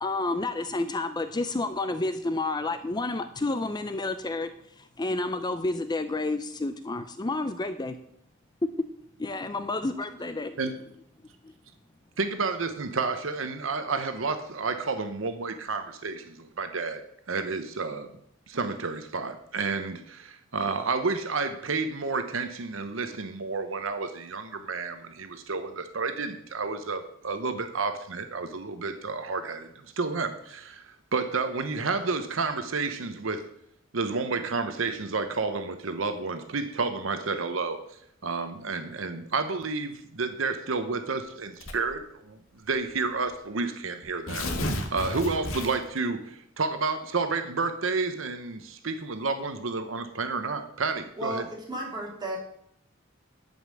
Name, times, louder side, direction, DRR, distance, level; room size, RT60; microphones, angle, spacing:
voice 1, 0.0-4.5 4.8-8.0 8.6-8.7 9.2-10.6, left 2 dB, 20° left, 9 dB, 0.5 m, -30 dB
voice 2, 12.2-17.0 17.3-18.1 18.5-29.7 30.0-33.4 33.9-51.4, right 4 dB, 70° right, 8 dB, 0.9 m, -30 dB
Tearing, 41.6-42.0 42.9-43.0 43.3-43.4 44.0-46.0, left 1 dB, 85° left, 1.7 m, -32 dB
voice 3, 51.2-52.4, right 1 dB, 20° right, -2 dB, 3.0 m, -34 dB
11.0 x 5.5 x 7.6 m, 0.72 s
head